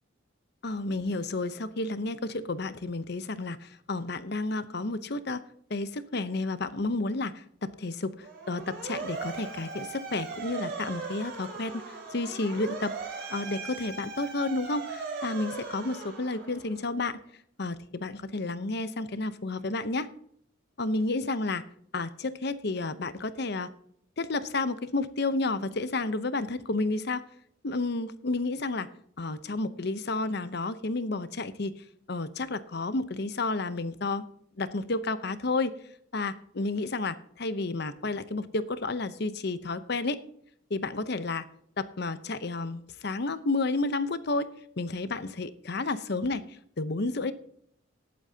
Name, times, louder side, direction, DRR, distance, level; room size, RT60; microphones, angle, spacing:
voice 1, 0.6-5.4 5.7-12.9 13.3-17.2 17.6-20.1 20.8-21.6 21.9-23.7 24.2-27.2 27.6-28.9 29.2-34.2 34.6-35.7 36.1-40.2 40.7-41.4 41.8-44.5 44.8-46.4 46.8-47.3, left 3 dB, 60° left, 13 dB, 0.8 m, -31 dB
Motor vehicle (road) / Siren, 8.2-16.8, right 4 dB, 55° right, 5.5 m, -39 dB
19.0 x 8.6 x 2.8 m, 0.68 s
head